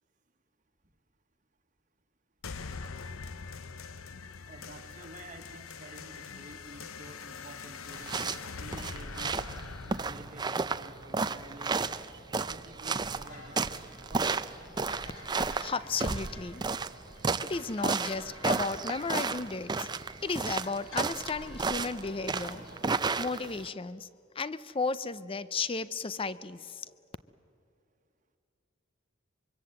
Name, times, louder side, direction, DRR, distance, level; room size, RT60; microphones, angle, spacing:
sound 1, 2.4-11.4, left 5 dB, 90° left, 0.8 m, -43 dB
voice 1, 4.5-8.3 8.6-9.3 9.8-11.9 12.4-13.6 14.1-14.4, right 2 dB, 40° right, 1.4 m, -50 dB
sound 2, 7.9-23.7, right 4 dB, 20° right, 0.5 m, -33 dB
sound 3, 13.2-22.9, left 2 dB, 65° left, 4.6 m, -50 dB
voice 2, 15.6-16.6 17.5-19.9 20.2-22.6 23.2-24.1 24.4-26.9, left 4 dB, 25° left, 0.5 m, -34 dB
25.0 x 23.5 x 7.8 m
head